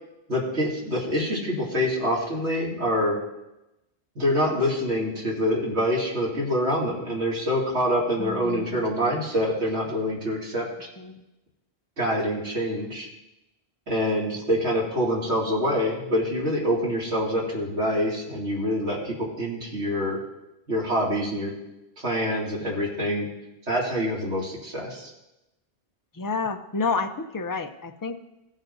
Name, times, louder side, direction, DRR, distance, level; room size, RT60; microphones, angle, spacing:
voice 1, 0.3-3.2 4.2-10.9 12.0-13.1 13.9-20.2 20.7-21.5 22.0-23.3 23.7-25.1, equal, 90° right, -4 dB, 2.8 m, -26 dB
voice 2, 8.2-8.8 11.0-11.2 26.2-28.2, left 4 dB, 30° left, 7 dB, 0.4 m, -30 dB
16.5 x 9.1 x 2.7 m, 0.93 s
omnidirectional pair, 1.1 m